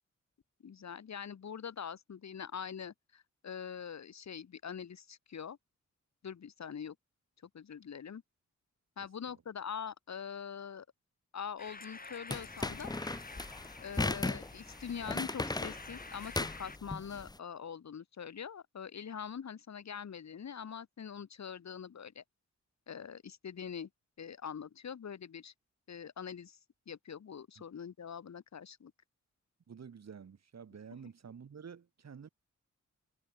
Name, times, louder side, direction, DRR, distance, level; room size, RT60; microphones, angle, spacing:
voice 1, 0.6-5.6 6.2-6.9 7.5-8.2 9.0-10.8 11.3-12.9 13.8-22.2 22.9-23.9 24.2-25.5 25.9-26.6 26.9-28.9, left 7 dB, 65° left, 3.4 m, -43 dB
voice 2, 9.0-9.4 27.6-27.7 29.7-32.3, right 6 dB, 60° right, 7.9 m, -50 dB
sound 1, 11.6-16.8, left 3 dB, 30° left, 4.5 m, -50 dB
sound 2, 12.3-17.3, left 2 dB, 15° left, 0.9 m, -37 dB
wide cardioid pair, 115°, 30 cm